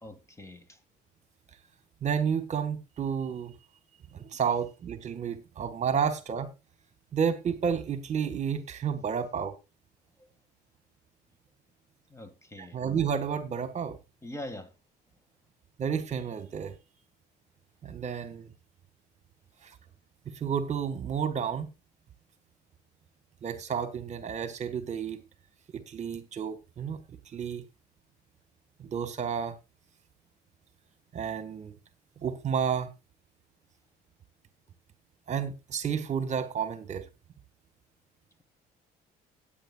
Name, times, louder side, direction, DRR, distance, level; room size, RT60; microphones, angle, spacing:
voice 1, 0.0-0.6 12.1-12.8 14.2-14.7, left 1 dB, 15° left, 1.8 m, -42 dB
voice 2, 2.0-3.5 4.1-6.5 7.1-9.5 12.6-14.0 15.8-16.7 17.8-18.5 19.6-19.7 20.3-21.7 23.4-25.2 25.9-27.0 27.3-27.6 28.8-29.5 31.1-31.7 32.2-32.9 35.3-37.1, right 7 dB, 45° right, 1.5 m, -31 dB
17.0 x 9.0 x 2.3 m
cardioid pair, 110°, 17 cm